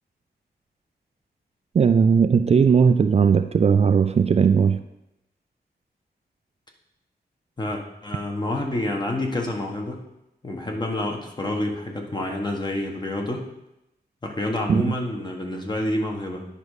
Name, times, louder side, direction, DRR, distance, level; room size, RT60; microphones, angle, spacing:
voice 1, 1.7-4.8 14.7-14.9, right 6 dB, 40° right, 9 dB, 0.3 m, -18 dB
voice 2, 7.6-10.0 10.4-13.5 14.2-16.5, left 1 dB, 25° left, 1 dB, 1.4 m, -28 dB
9.9 x 5.3 x 4.9 m, 0.88 s
wide cardioid pair, 115°, 17 cm